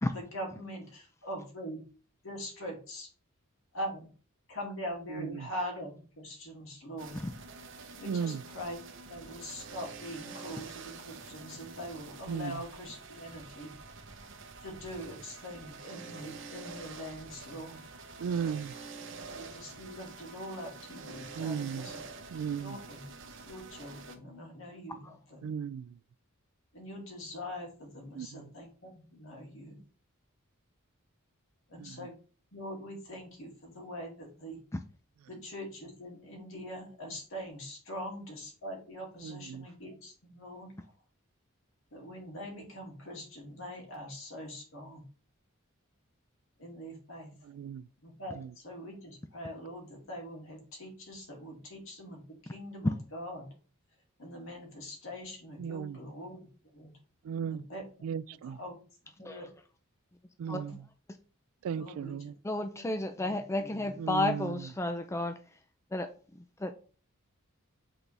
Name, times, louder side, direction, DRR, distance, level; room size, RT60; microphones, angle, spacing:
voice 1, 0.1-1.8 2.2-3.1 3.7-4.1 4.5-7.2 8.0-8.8 9.1-13.7 14.6-17.8 19.3-22.0 22.4-23.0 23.5-25.5 26.7-29.8 31.7-32.1 32.5-34.6 35.3-40.7 41.9-45.0 46.6-47.3 48.0-52.2 52.5-53.5 54.2-56.4 56.7-56.9 57.4-57.9 58.4-58.8 59.2-59.5 61.7-62.3 62.7-63.9, equal, 65° left, 2.5 m, -43 dB
voice 2, 5.1-5.5 8.0-8.4 12.3-12.6 18.2-18.7 21.3-21.9 22.3-22.8 25.4-26.0 28.1-28.5 31.8-32.1 39.2-39.7 47.4-47.9 48.3-48.5 55.6-56.0 57.2-57.6 58.0-58.6 60.4-60.9 61.6-62.3 64.0-64.7, right 7 dB, 75° right, 0.3 m, -36 dB
sound 1, 7.0-24.2, right 4 dB, 60° right, 1.0 m, -47 dB
voice 3, 62.4-65.4 65.9-66.1 66.6-66.7, left 2 dB, 15° left, 0.4 m, -32 dB
8.1 x 4.1 x 3.4 m
head